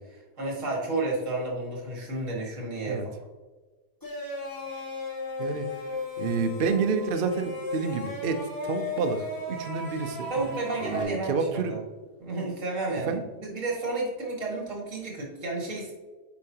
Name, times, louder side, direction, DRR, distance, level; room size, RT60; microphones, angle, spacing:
voice 1, 0.0-3.1 10.3-11.8 12.2-15.9, right 2 dB, 50° right, -2 dB, 2.3 m, -32 dB
sound 1, 4.0-11.0, left 3 dB, 15° left, 1.5 m, -35 dB
Drum, 6.2-7.7 10.3-12.5, left 1 dB, 55° left, 2.4 m, -50 dB
voice 2, 6.2-10.3 10.8-11.7 13.1-13.2, right 5 dB, 80° right, 6 dB, 0.4 m, -29 dB
8.5 x 5.4 x 2.8 m, 1.3 s
omnidirectional pair, 1.7 m